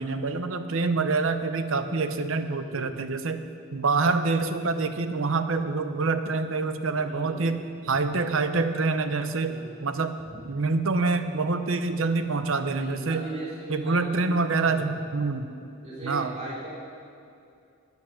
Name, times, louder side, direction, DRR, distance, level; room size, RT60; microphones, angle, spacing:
voice 1, 0.0-3.4 3.7-10.1 10.5-13.2 13.7-15.5 16.0-16.3, right 3 dB, 65° right, 9 dB, 0.7 m, -26 dB
voice 2, 2.6-3.0 7.0-7.5 9.4-9.7 10.2-10.3 12.7-14.3 14.6-14.9 15.8-16.7, right 2 dB, 30° right, -7 dB, 3.1 m, -39 dB
10.5 x 9.3 x 7.2 m, 2.5 s
head